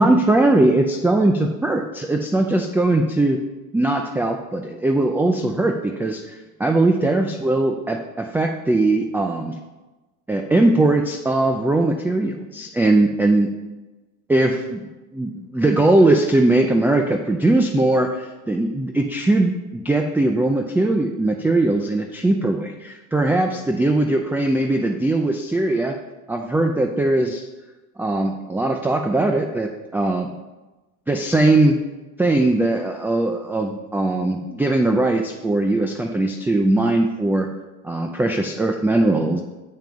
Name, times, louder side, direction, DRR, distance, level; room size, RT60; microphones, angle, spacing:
voice 1, 0.0-3.4 3.7-9.5 10.3-13.5 14.3-25.9 26.3-27.5 28.0-30.3 31.1-31.8 32.2-37.5 37.8-39.4, right 2 dB, 5° right, 4 dB, 0.4 m, -20 dB
7.5 x 5.7 x 5.1 m, 1.1 s
supercardioid pair, 100°, 44 cm